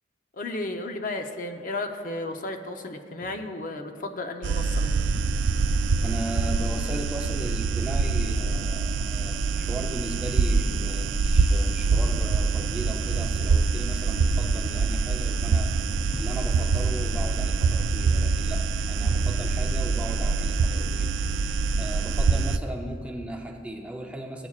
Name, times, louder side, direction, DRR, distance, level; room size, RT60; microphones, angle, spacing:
voice 1, 0.3-5.0, left 2 dB, 45° left, 5 dB, 0.6 m, -33 dB
sound 1, 4.4-22.6, right 4 dB, 70° right, 0.3 m, -25 dB
voice 2, 6.0-15.8 16.2-21.1 21.8-24.5, right 1 dB, 5° right, 1 dB, 0.5 m, -37 dB
16.0 x 8.2 x 2.4 m, 2.1 s
head